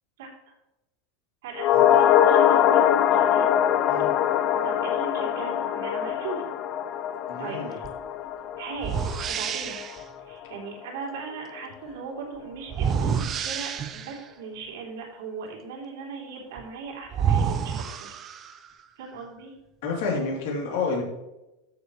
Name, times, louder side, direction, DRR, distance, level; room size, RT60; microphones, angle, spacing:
voice 1, 0.2-0.5 1.4-2.8 3.1-3.5 4.6-6.4 7.4-7.8 8.6-9.8 10.2-18.1 19.0-19.5, right 5 dB, 80° right, -1 dB, 3.5 m, -38 dB
sound 1, 1.6-10.0 10.3-10.4, left 10 dB, 30° left, 0.4 m, -23 dB
voice 2, 7.3-7.8 19.8-21.0, left 4 dB, 60° left, -1 dB, 3.2 m, -29 dB
sound 2, 7.8-8.0 8.8-10.0 12.7-14.3 16.6-16.7 17.1-18.7, right 7 dB, 25° right, 0.5 m, -28 dB
13.5 x 7.0 x 3.2 m, 0.95 s
supercardioid pair, 175°, 0 cm